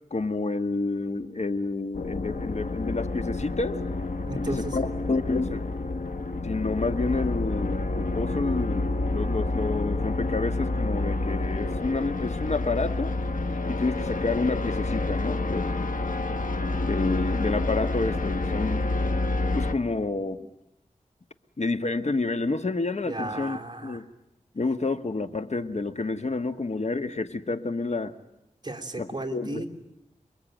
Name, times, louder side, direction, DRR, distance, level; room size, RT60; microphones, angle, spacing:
voice 1, 0.1-3.8 4.3-5.6 6.4-8.9 9.1-13.1 13.7-16.0 16.8-18.9 19.5-20.5 21.6-24.0 24.5-28.1 29.0-29.6, left 3 dB, 55° left, 9 dB, 1.5 m, -29 dB
sound 1, 1.9-19.7, left 2 dB, 85° left, 1.2 m, -28 dB
voice 2, 4.3-4.8 23.0-24.0 28.6-29.7, right 2 dB, 30° right, 5 dB, 3.3 m, -34 dB
28.5 x 22.0 x 9.1 m, 0.86 s
wide cardioid pair, 70°, 13 cm